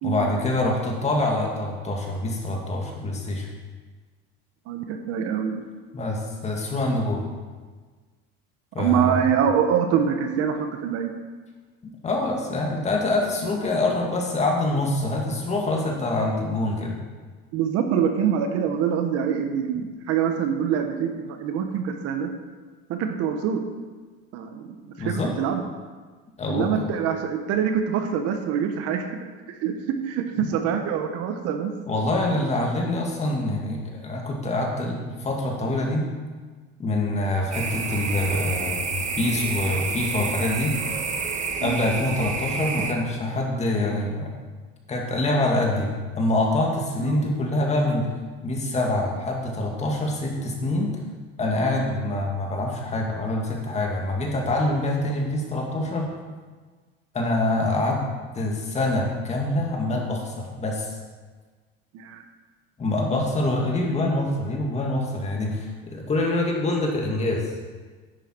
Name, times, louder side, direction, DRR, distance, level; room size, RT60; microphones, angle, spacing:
voice 1, 0.0-3.5 5.9-7.3 8.7-9.2 12.0-16.9 19.7-19.8 25.0-25.3 26.4-26.9 30.4-30.7 31.9-36.1 36.8-40.7 41.6-44.3 44.9-48.0 48.4-50.9 51.4-56.1 57.1-58.0 58.3-60.9 62.8-67.4, left 2 dB, 25° left, 0 dB, 2.2 m, -25 dB
voice 2, 4.7-5.5 8.8-11.1 17.5-22.3 22.9-23.6 24.3-24.7 25.0-25.7 26.5-29.1 29.5-31.7 41.6-41.8 47.0-47.2 61.9-62.2, right 8 dB, 55° right, 6 dB, 1.2 m, -25 dB
sound 1, 37.5-42.9, right 5 dB, 25° right, 1.1 m, -29 dB
10.5 x 9.0 x 4.6 m, 1.4 s
supercardioid pair, 125°, 29 cm